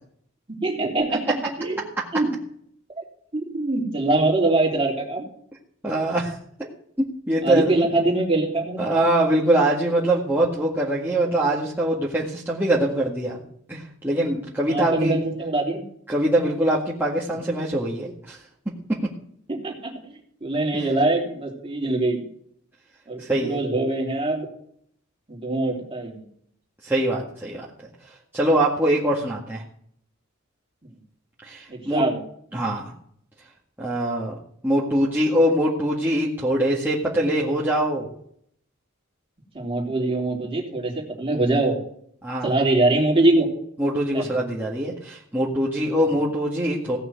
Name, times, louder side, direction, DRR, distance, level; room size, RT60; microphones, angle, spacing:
voice 1, 0.5-1.8 2.1-2.3 3.0-3.1 3.3-5.3 7.4-9.0 14.7-15.8 19.5-20.1 20.4-22.2 23.1-24.5 25.3-26.3 31.7-32.2 39.5-41.7 42.4-43.5 44.1-44.3, right 2 dB, 25° right, 0 dB, 3.2 m, -23 dB
voice 2, 5.8-6.4 7.0-7.9 8.8-13.4 13.7-15.2 16.1-18.4 20.7-20.9 23.2-23.6 26.8-27.7 28.3-29.6 31.4-32.0 32.5-32.9 33.8-34.3 34.6-38.1 42.2-42.5 43.8-47.0, right 1 dB, 10° right, -6 dB, 2.0 m, -23 dB
17.0 x 6.2 x 7.8 m, 0.65 s
head